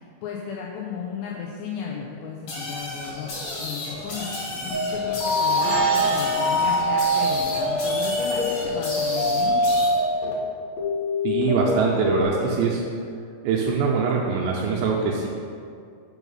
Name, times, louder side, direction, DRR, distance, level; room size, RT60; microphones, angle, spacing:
voice 1, 0.0-3.3 3.6-9.7, left 6 dB, 85° left, -2 dB, 2.5 m, -35 dB
sound 1, 2.5-9.9, left 1 dB, 50° left, 2.9 m, -33 dB
sound 2, 4.7-10.3 10.8-12.3, left 1 dB, 65° left, 2.5 m, -24 dB
sound 3, 5.6-10.3, right 1 dB, 60° right, 1.9 m, -34 dB
voice 2, 11.2-12.8 13.4-15.3, right 5 dB, 80° right, -2 dB, 2.6 m, -23 dB
5.9 x 5.6 x 5.5 m, 2.3 s
omnidirectional pair, 5.6 m